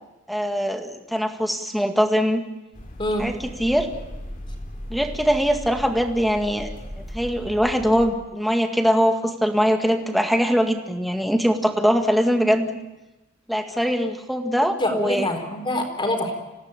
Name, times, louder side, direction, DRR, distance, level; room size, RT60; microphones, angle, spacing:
voice 1, 0.3-2.4 3.2-3.3 3.6-3.9 4.9-6.7 7.1-12.8 13.5-15.3, equal, ahead, 5 dB, 2.0 m, -22 dB
sound 1, 2.7-8.1, equal, 45° left, 3.8 m, -37 dB
voice 2, 14.8-16.3, left 1 dB, 25° left, 3 dB, 4.3 m, -25 dB
27.5 x 17.0 x 9.0 m, 1.0 s
head